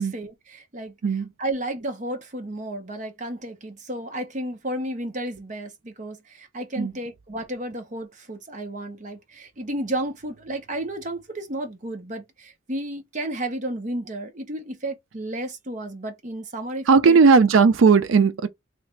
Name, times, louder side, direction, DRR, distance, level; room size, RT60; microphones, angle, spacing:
voice 1, 0.0-1.0 1.4-17.2, right 1 dB, 35° right, 0.8 m, -32 dB
voice 2, 16.9-18.5, right 5 dB, 75° right, 0.5 m, -16 dB
3.2 x 2.4 x 3.2 m
head